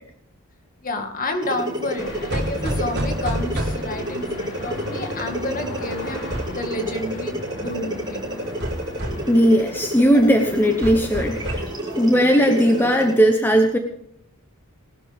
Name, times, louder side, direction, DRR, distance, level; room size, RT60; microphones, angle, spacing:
voice 1, 0.8-8.2, left 1 dB, 40° left, 5 dB, 1.9 m, -30 dB
sound 1, 1.4-13.3, equal, 20° right, 5.9 m, -31 dB
sound 2, 2.0-11.6, left 1 dB, 75° left, 4.5 m, -38 dB
sound 3, 2.3-4.1 6.3-6.6 8.6-9.3 10.8-11.8, equal, 50° right, 3.4 m, -28 dB
voice 2, 9.3-11.7 12.0-13.8, equal, 10° left, 4 dB, 0.9 m, -17 dB
19.5 x 12.0 x 3.5 m, 0.73 s
head